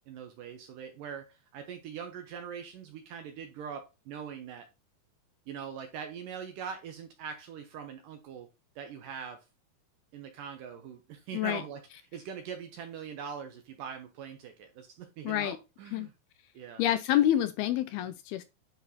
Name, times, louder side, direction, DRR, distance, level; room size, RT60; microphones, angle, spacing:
voice 1, 0.1-4.7 5.5-9.5 10.1-11.8 12.1-16.1 16.5-16.8, right 7 dB, 75° right, 2.1 m, -42 dB
voice 2, 15.2-15.6 15.9-16.1 16.8-18.4, left 12 dB, 80° left, 2.4 m, -27 dB
9.9 x 4.0 x 4.1 m
omnidirectional pair, 4.7 m